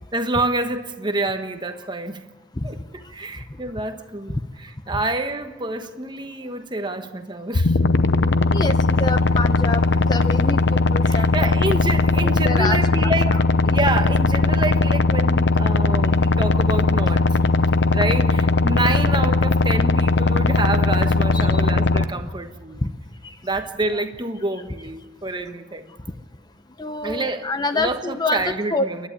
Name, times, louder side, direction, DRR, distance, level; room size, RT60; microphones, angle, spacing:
voice 1, 0.1-2.2 2.6-2.8 3.1-4.4 4.9-7.8 11.0-13.4 13.6-17.4 17.9-22.8 23.4-25.9 27.0-27.4 27.7-29.0, right 2 dB, 25° right, 1.3 m, -27 dB
sound 1, 7.5-22.0, left 3 dB, 65° left, 0.8 m, -19 dB
voice 2, 8.5-11.5 12.2-13.4 21.3-21.7 22.2-22.3 22.8-22.9 23.2-23.4 23.9-24.0 26.8-28.9, left 2 dB, 20° left, 0.8 m, -27 dB
28.5 x 11.5 x 9.9 m
head